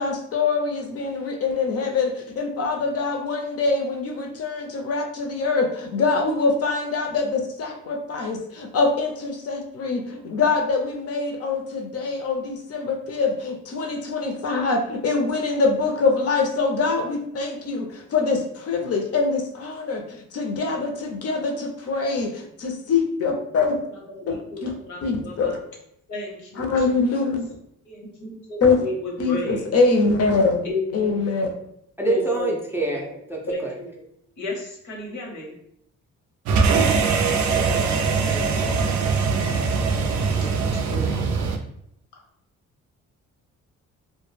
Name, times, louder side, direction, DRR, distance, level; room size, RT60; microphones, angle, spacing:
voice 1, 0.0-23.8 24.3-24.4 24.6-24.7 25.0-25.5 26.6-27.5 28.6-28.8 29.2-30.7 30.9-31.5, left 4 dB, 50° left, 3 dB, 0.6 m, -24 dB
voice 2, 24.1-25.6 26.1-27.3 27.8-29.6 30.6-31.2 32.0-32.6 32.9-33.2 33.4-33.9 34.4-35.6 40.3-41.3, left 2 dB, 75° left, -1 dB, 0.9 m, -33 dB
voice 3, 32.0-33.7 37.5-38.0 38.3-38.7, right 2 dB, 10° right, -2 dB, 0.4 m, -28 dB
sound 1, 36.5-41.6, right 5 dB, 70° right, 0.4 m, -22 dB
2.1 x 2.0 x 3.1 m, 0.74 s
cardioid pair, 90°, 30 cm